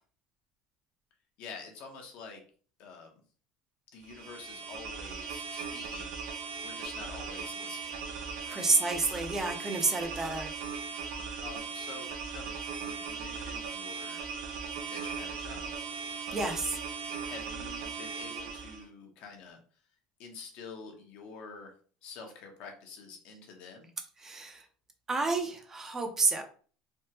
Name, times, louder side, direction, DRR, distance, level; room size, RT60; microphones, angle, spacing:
voice 1, 1.4-2.4 2.8-3.2 3.9-6.2 6.6-8.0 8.4-8.7 11.4-14.2 14.7-15.7 17.2-19.6 20.2-21.7 22.0-23.9, left 4 dB, 65° left, 3 dB, 0.8 m, -47 dB
sound 1, 4.0-18.8, right 5 dB, 85° right, 0.6 m, -38 dB
voice 2, 8.5-10.5 16.3-16.8 24.2-24.6 25.1-26.4, right 3 dB, 20° right, 4 dB, 0.5 m, -29 dB
3.4 x 2.1 x 2.8 m, 0.42 s
cardioid pair, 130°, 2 cm